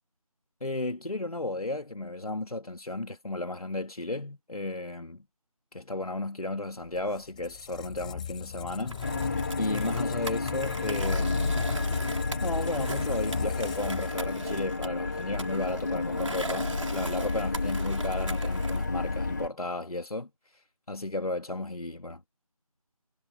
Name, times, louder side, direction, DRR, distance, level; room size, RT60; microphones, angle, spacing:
voice 1, 0.6-5.2 5.7-9.0 9.6-11.7 12.4-20.3 20.9-22.3, left 2 dB, 75° left, 3.1 m, -34 dB
Squeak, 6.8-14.6, left 9 dB, 10° left, 5.4 m, -39 dB
Skateboard, 8.9-18.9, right 2 dB, 55° right, 4.4 m, -40 dB
sound 1, 9.0-19.5, left 3 dB, 30° left, 2.5 m, -31 dB
figure-of-eight pair, 175°, 19 cm